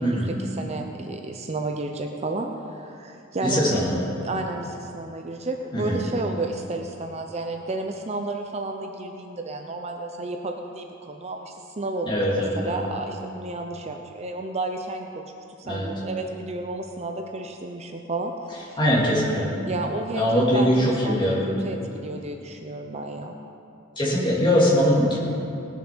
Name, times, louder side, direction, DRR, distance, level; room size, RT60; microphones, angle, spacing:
voice 1, 0.0-3.8 4.2-15.3 15.6-18.8 19.7-23.3, right 2 dB, 30° right, 4 dB, 0.6 m, -32 dB
voice 2, 3.4-4.0 5.7-6.0 12.0-12.8 15.6-15.9 18.8-19.5 20.1-21.5 24.0-25.2, equal, 25° left, -6 dB, 2.9 m, -21 dB
18.5 x 7.0 x 6.2 m, 2.7 s
head